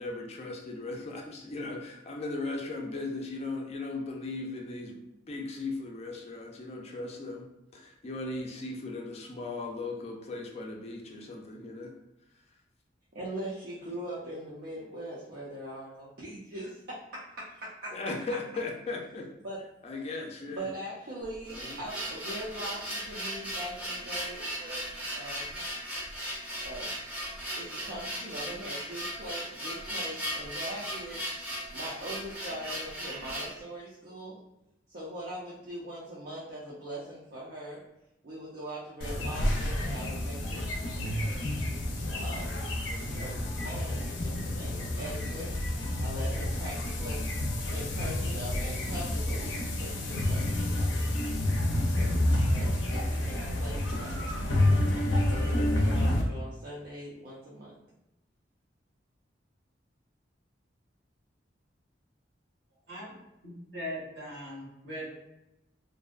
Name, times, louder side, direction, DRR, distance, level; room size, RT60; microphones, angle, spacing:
voice 1, 0.0-5.0 5.3-7.5 7.7-11.9 17.9-19.3 19.8-20.7 21.5-21.8, left 3 dB, 35° left, 0 dB, 0.4 m, -37 dB
voice 2, 13.1-17.9 19.4-19.6 20.5-24.9 25.1-25.6 26.6-26.9 27.6-31.2 31.7-34.4 34.9-37.8 38.2-41.5 42.2-42.6 43.1-45.5 46.0-47.2 47.7-51.1 51.8-52.2 52.5-54.4 55.2-57.7, right 1 dB, 55° right, -6 dB, 0.5 m, -41 dB
sound 1, 21.2-33.6, equal, 10° right, 0.6 m, -37 dB
sound 2, 39.0-56.2, left 1 dB, 90° left, 0.5 m, -29 dB
voice 3, 63.4-65.1, equal, 80° right, -6 dB, 1.3 m, -39 dB
2.5 x 2.1 x 2.4 m, 0.90 s
head